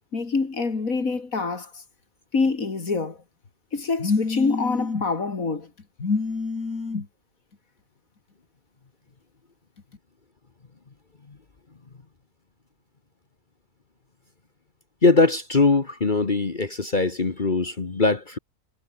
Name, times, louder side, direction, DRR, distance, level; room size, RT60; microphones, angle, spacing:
voice 1, 0.1-1.8 2.3-3.2 3.7-5.7 6.0-7.1, left 4 dB, 65° left, 3.1 m, -25 dB
voice 2, 15.0-18.4, left 3 dB, 35° left, 1.5 m, -21 dB
omnidirectional pair, 1.6 m